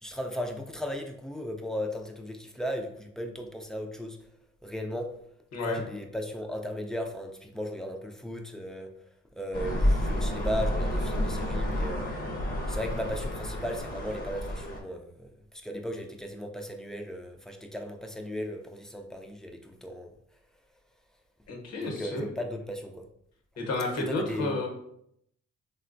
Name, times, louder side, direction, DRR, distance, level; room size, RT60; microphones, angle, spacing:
voice 1, 0.0-4.2 4.6-5.2 5.6-8.9 9.4-12.2 12.7-20.1 21.8-23.1 24.1-24.6, equal, ahead, 2 dB, 0.3 m, -36 dB
sound 1, 9.5-14.8, left 1 dB, 30° left, 0.7 m, -30 dB
voice 2, 21.5-22.3 23.6-24.7, left 2 dB, 55° left, 1 dB, 0.9 m, -31 dB
3.6 x 2.2 x 2.5 m, 0.73 s
cardioid pair, 90°, 30 cm